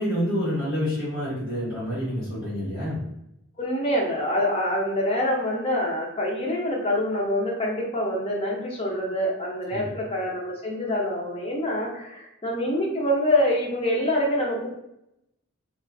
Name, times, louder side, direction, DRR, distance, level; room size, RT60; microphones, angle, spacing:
voice 1, 0.0-3.0 9.7-9.9, equal, 50° left, -11 dB, 1.2 m, -28 dB
voice 2, 3.6-14.7, left 1 dB, 25° left, -2 dB, 0.6 m, -25 dB
2.4 x 2.4 x 2.3 m, 0.82 s
head